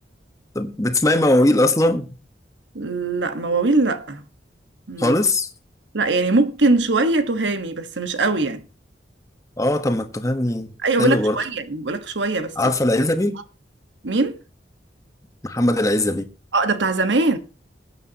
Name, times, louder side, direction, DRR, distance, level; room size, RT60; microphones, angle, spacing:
voice 1, 0.5-2.1 5.0-5.5 9.6-10.7 11.0-11.4 12.6-13.4 15.4-16.2, left 1 dB, 20° left, 1.3 m, -19 dB
voice 2, 2.7-4.2 4.9-5.1 5.9-8.6 10.8-12.5 14.0-14.4 16.5-17.4, right 3 dB, 85° right, 1.5 m, -21 dB
20.5 x 9.3 x 2.9 m
head